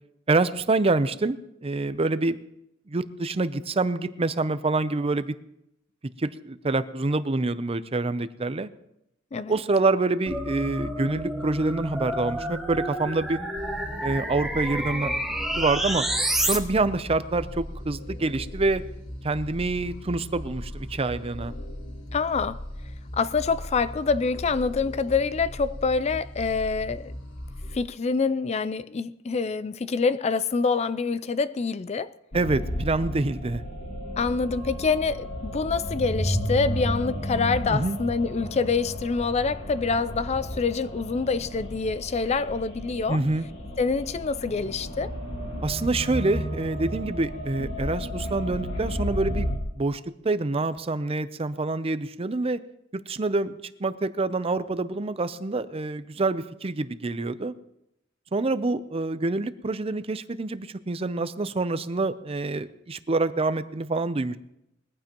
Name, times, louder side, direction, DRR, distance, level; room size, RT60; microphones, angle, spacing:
voice 1, 0.3-1.4 1.6-2.4 2.9-5.4 6.2-8.7 9.5-13.4 14.0-15.1 15.6-16.0 16.5-18.8 19.2-21.5 32.3-33.6 37.7-38.0 43.1-43.5 45.6-49.5 49.8-52.6 52.9-57.5 58.3-64.4, right 3 dB, 30° right, 0.6 m, -26 dB
sound 1, 10.3-16.6, right 1 dB, ahead, 1.2 m, -29 dB
sound 2, 13.6-27.8, left 1 dB, 75° left, 1.7 m, -38 dB
voice 2, 22.1-22.6 23.2-27.1 27.7-32.1 34.2-43.2 43.8-45.1, left 4 dB, 35° left, 0.4 m, -26 dB
sound 3, 32.3-49.6, equal, 60° left, 2.4 m, -33 dB
21.0 x 14.5 x 3.0 m
head